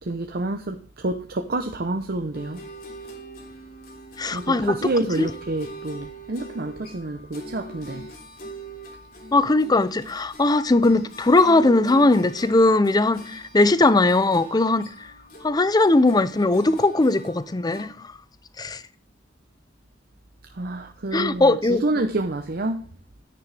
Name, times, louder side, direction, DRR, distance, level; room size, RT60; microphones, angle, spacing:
voice 1, 0.0-2.6 4.3-8.1 20.5-22.9, right 2 dB, 55° right, 0.8 m, -28 dB
sound 1, 2.3-17.8, right 1 dB, 55° left, 3.2 m, -42 dB
voice 2, 4.2-4.8 5.2-5.3 9.3-15.1 15.4-18.1 18.6-18.8 21.1-21.8, left 2 dB, 20° left, 0.5 m, -19 dB
9.9 x 9.7 x 3.4 m
head